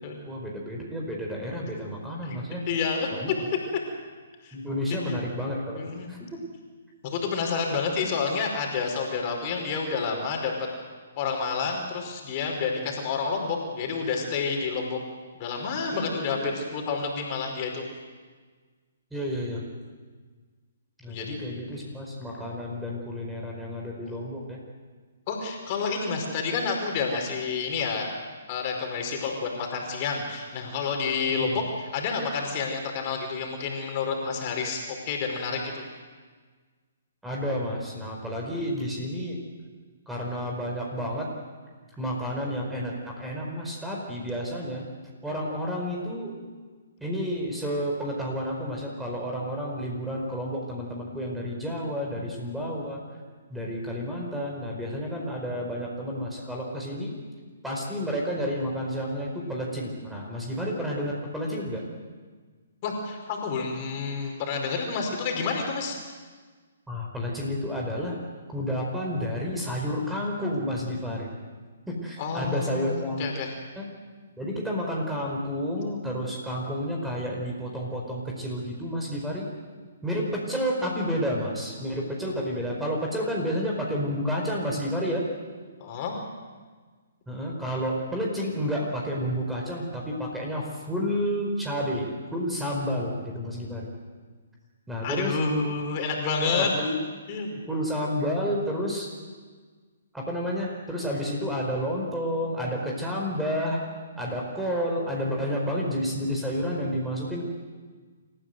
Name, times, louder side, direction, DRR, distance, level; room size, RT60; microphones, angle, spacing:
voice 1, 0.3-2.6 3.1-3.3 4.5-5.8 6.1-6.4 15.9-16.6 19.1-19.6 21.0-24.6 31.3-31.6 37.2-39.4 40.1-41.3 42.0-44.8 45.2-46.3 47.0-53.0 53.5-57.1 57.6-61.8 66.9-68.2 68.5-71.3 71.9-73.3 73.8-73.9 74.4-79.5 80.0-85.2 87.3-93.9 94.9-95.4 96.4-97.0 97.5-99.1 100.1-103.8 104.2-107.4, equal, 5° right, -1 dB, 4.8 m, -30 dB
voice 2, 2.7-3.1 4.4-4.5 4.9-5.0 5.7-6.1 7.0-10.5 11.2-15.0 15.3-17.8 21.1-21.4 24.1-24.2 25.3-28.1 28.5-35.8 62.8-66.0 72.2-73.5 85.8-86.2 95.0-96.7 97.3-97.5, left 5 dB, 35° left, 1 dB, 5.0 m, -29 dB
28.5 x 15.0 x 8.0 m, 1.5 s
figure-of-eight pair, 130°, 0 cm